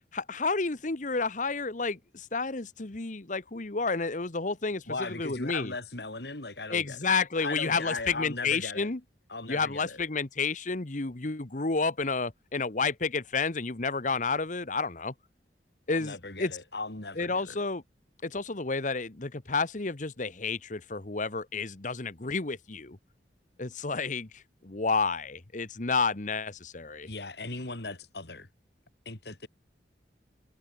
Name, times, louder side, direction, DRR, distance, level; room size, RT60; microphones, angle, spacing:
voice 1, 0.1-5.7 6.7-9.0 9.5-15.1 15.9-16.5 17.2-17.8 18.2-23.0 23.6-27.1, left 4 dB, 45° left, 1.2 m, -30 dB
voice 2, 4.9-7.1 7.4-8.9 9.3-10.0 15.9-17.6 27.1-28.5 29.0-29.5, left 3 dB, 65° left, 3.2 m, -38 dB
head